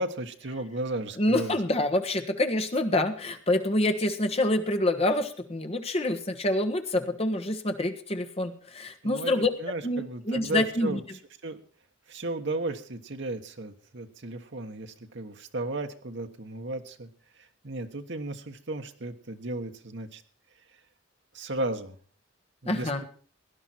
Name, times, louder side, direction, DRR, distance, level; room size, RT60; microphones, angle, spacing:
voice 1, 0.0-1.5 9.0-11.0 11.4-11.6 12.1-17.1 17.6-20.2 21.3-21.9 22.6-23.0, right 2 dB, 60° right, 6 dB, 1.3 m, -34 dB
voice 2, 1.2-9.5 9.8-11.0 22.7-23.0, left 1 dB, 30° left, 5 dB, 1.4 m, -27 dB
18.0 x 11.0 x 4.5 m, 0.43 s
head